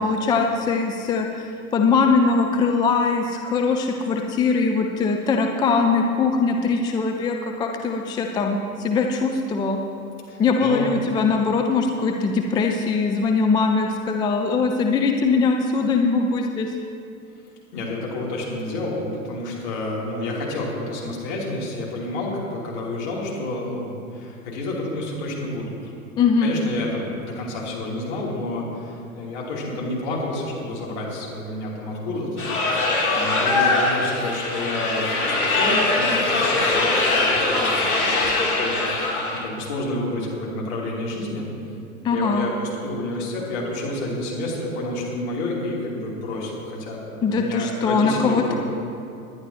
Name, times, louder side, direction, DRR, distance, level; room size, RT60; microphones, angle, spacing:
voice 1, 0.0-9.8 10.4-16.7 26.2-26.6 42.0-42.5 47.2-48.6, left 4 dB, 10° left, 3 dB, 0.4 m, -21 dB
voice 2, 10.2-10.9 17.7-25.9 26.4-32.5 33.1-41.5 42.1-48.6, left 2 dB, 50° left, -4 dB, 3.5 m, -29 dB
sound 1, 32.4-39.4, left 2 dB, 85° left, 2.3 m, -22 dB
19.5 x 10.5 x 3.0 m, 2.6 s
figure-of-eight pair, 90°, 42 cm